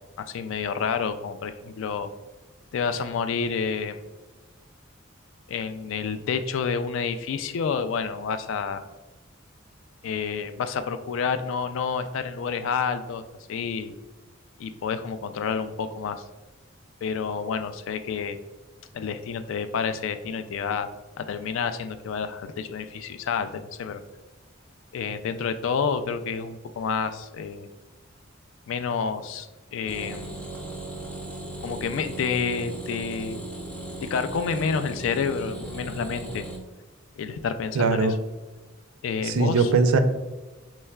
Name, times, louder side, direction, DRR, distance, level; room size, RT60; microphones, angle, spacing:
voice 1, 0.0-2.1 2.7-4.0 5.5-8.8 10.0-13.2 13.5-13.9 14.6-16.2 17.0-18.4 18.9-20.9 21.2-24.0 24.9-27.7 28.7-30.5 31.6-33.4 34.0-36.4 37.2-38.2 39.0-39.7, left 6 dB, 65° left, 10 dB, 0.3 m, -29 dB
sound 1, 29.9-36.6, right 2 dB, 5° left, 0.5 m, -37 dB
voice 2, 37.8-38.1 39.2-40.0, right 4 dB, 85° right, 8 dB, 0.4 m, -21 dB
4.6 x 3.1 x 2.2 m, 1.2 s
head